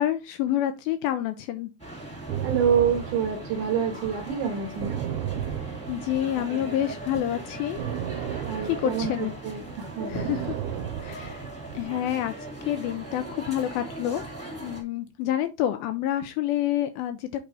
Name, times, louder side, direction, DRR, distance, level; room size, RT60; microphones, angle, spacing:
voice 1, 0.0-1.7 5.9-7.8 8.6-9.3 10.1-10.6 11.0-11.5 11.7-12.3 12.7-14.2 14.6-17.3, left 12 dB, 80° left, 2.2 m, -28 dB
sound 1, 1.8-14.8, right 2 dB, 5° left, 1.2 m, -39 dB
sound 2, 2.3-6.7 6.9-11.9, right 10 dB, 80° right, 2.6 m, -33 dB
voice 2, 2.4-5.0 8.4-10.3, right 7 dB, 65° right, 2.3 m, -27 dB
8.8 x 3.9 x 3.3 m
omnidirectional pair, 4.6 m